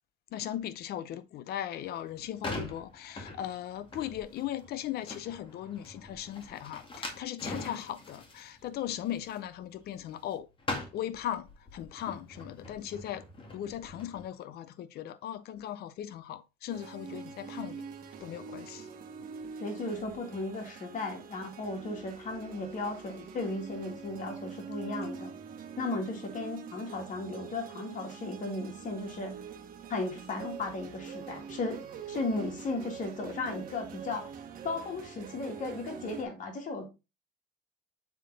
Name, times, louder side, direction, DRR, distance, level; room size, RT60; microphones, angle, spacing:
voice 1, 0.3-10.5 10.9-13.2 13.5-17.9 18.2-18.9, left 11 dB, 70° left, 0.7 m, -38 dB
sound 1, 2.0-10.3 10.6-14.2, left 2 dB, 30° left, 2.1 m, -42 dB
sound 2, 16.7-36.2, right 6 dB, 55° right, 1.3 m, -44 dB
voice 2, 19.6-25.3 25.8-29.3 29.9-34.3 34.6-36.9, left 2 dB, 50° left, 2.4 m, -35 dB
7.4 x 3.7 x 4.0 m
cardioid pair, 110°, 17 cm